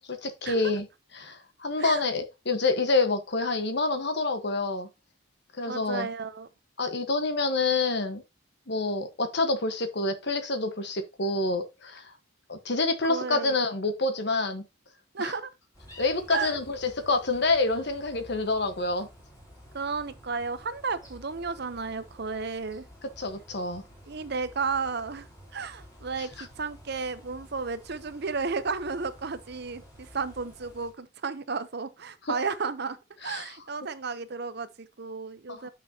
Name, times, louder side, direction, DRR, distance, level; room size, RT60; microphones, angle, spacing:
voice 1, 0.2-0.9 1.1-4.9 5.6-6.1 6.8-8.2 8.7-12.1 12.5-14.6 15.2-15.3 16.0-19.1 23.2-23.8 33.2-33.5 35.5-35.7, left 3 dB, 55° left, 1.3 m, -27 dB
voice 2, 5.7-6.5 13.1-13.6 15.1-15.5 16.3-16.5 19.7-22.9 24.1-25.3 25.5-35.7, right 4 dB, 55° right, 0.8 m, -33 dB
sound 1, 15.7-30.9, equal, 20° left, 3.6 m, -51 dB
9.0 x 6.2 x 2.9 m
head